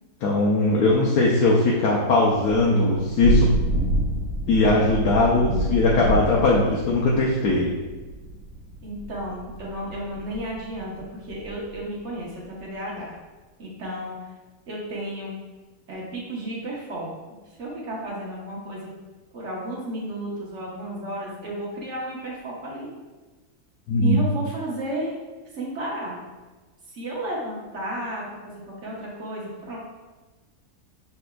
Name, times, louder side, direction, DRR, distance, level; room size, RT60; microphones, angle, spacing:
voice 1, 0.2-3.5 4.5-7.7 23.9-24.2, left 2 dB, 80° left, -3 dB, 1.2 m, -20 dB
Thunder / Rain, 2.7-11.8, right 1 dB, 75° right, 1.5 m, -28 dB
voice 2, 8.8-13.1 13.6-14.2 14.7-15.4 15.9-17.1 17.6-18.9 19.3-22.9 24.0-25.1 25.5-26.2 26.9-29.8, right 1 dB, 50° right, -4 dB, 1.3 m, -33 dB
6.9 x 3.4 x 2.2 m, 1.2 s
omnidirectional pair, 1.6 m